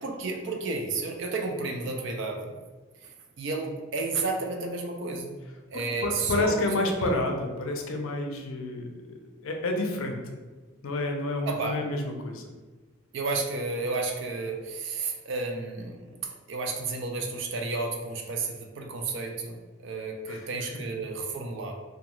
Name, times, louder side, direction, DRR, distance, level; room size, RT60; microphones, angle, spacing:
voice 1, 0.0-2.6 3.0-3.1 3.4-5.4 5.7-6.7 11.4-11.8 13.1-16.1 16.5-21.8, right 3 dB, 60° right, 2 dB, 0.4 m, -32 dB
voice 2, 5.7-8.9 9.4-10.2 10.8-12.5 20.3-20.5, left 2 dB, 85° left, 3 dB, 0.4 m, -29 dB
2.3 x 2.3 x 2.9 m, 1.3 s
head